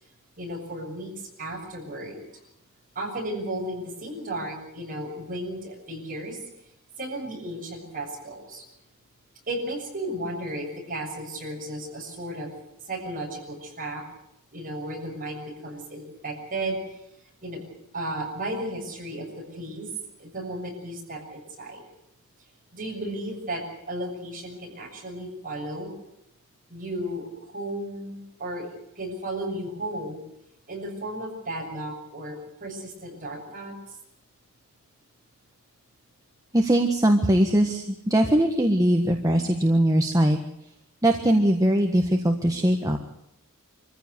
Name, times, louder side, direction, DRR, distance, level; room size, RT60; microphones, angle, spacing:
voice 1, 0.4-2.2 3.0-6.4 7.0-8.6 9.5-12.5 12.9-14.0 14.5-16.8 17.4-17.6 17.9-19.9 20.2-21.8 22.7-25.9 26.7-28.7 29.0-30.2 30.7-33.7, right 1 dB, 40° right, 0 dB, 6.8 m, -34 dB
voice 2, 36.5-40.4 41.0-43.0, right 1 dB, 15° right, 3 dB, 1.5 m, -21 dB
25.0 x 15.0 x 8.2 m, 0.82 s
head